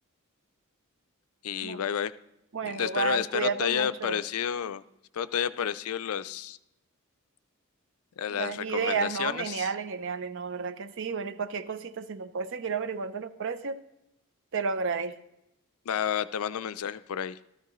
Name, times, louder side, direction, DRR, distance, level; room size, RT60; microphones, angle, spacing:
voice 1, 1.4-2.1 2.6-4.8 5.1-6.6 8.2-9.7 15.9-17.4, left 8 dB, 75° left, 14 dB, 0.4 m, -30 dB
voice 2, 2.5-4.2 8.3-13.8 14.5-15.2, right 5 dB, 60° right, 12 dB, 0.6 m, -32 dB
13.5 x 13.0 x 3.1 m, 0.86 s
head